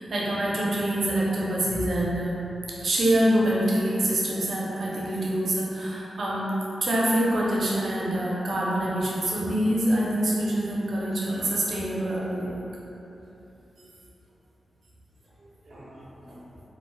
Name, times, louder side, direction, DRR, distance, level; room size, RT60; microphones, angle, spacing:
voice 1, 0.0-2.4 2.7-6.5 6.8-12.6 15.7-16.4, right 1 dB, 65° right, -6 dB, 0.5 m, -26 dB
2.4 x 2.1 x 3.1 m, 3.0 s
wide cardioid pair, 85°, 0 cm